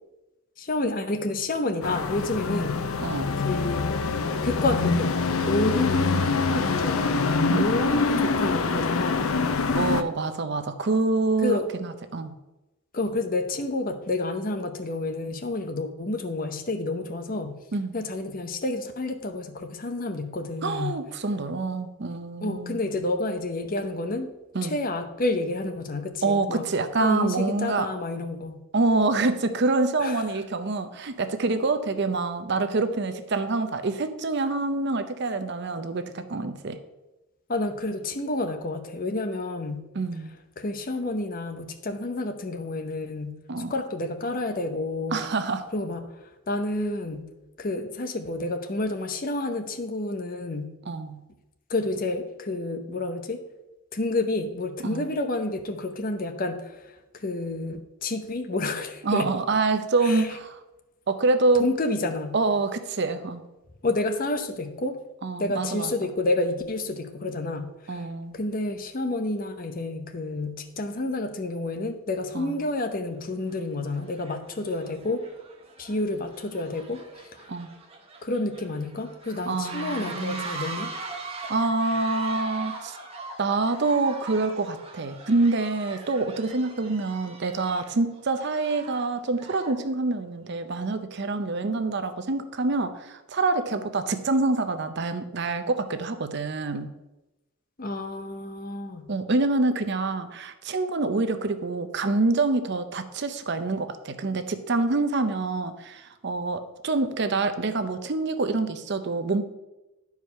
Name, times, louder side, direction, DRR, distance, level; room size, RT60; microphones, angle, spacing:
voice 1, 0.6-2.8 3.4-4.0 4.4-5.2 5.4-9.3 11.4-11.7 12.9-17.6 17.9-20.9 22.4-24.3 24.6-26.6 27.0-28.6 30.0-30.2 37.5-39.9 40.6-43.4 43.7-45.2 45.7-46.1 46.5-47.3 47.6-50.7 51.7-53.4 53.9-59.3 60.0-60.3 61.6-62.4 63.8-65.0 65.4-68.1 68.3-75.2 75.8-77.5 78.2-80.9 97.8-99.1, left 2 dB, 40° left, 7 dB, 0.8 m, -29 dB
sound 1, 1.8-10.0, left 4 dB, 90° left, 0.6 m, -25 dB
voice 2, 7.5-7.8 9.7-12.4 17.7-17.9 20.6-22.8 24.5-24.8 26.2-27.9 28.7-36.8 39.9-40.3 43.5-43.7 45.1-45.7 50.9-51.2 54.8-55.1 59.0-60.6 61.1-61.6 62.3-63.4 65.2-65.9 67.9-68.4 72.3-72.6 77.5-77.7 79.5-80.6 81.5-83.0 83.4-96.9 99.1-109.4, right 3 dB, 55° right, 10 dB, 0.6 m, -26 dB
sound 2, 72.5-72.6 73.3-73.5 73.9-89.9, right 3 dB, 30° right, 1.1 m, -41 dB
10.0 x 4.8 x 5.5 m, 1.0 s
head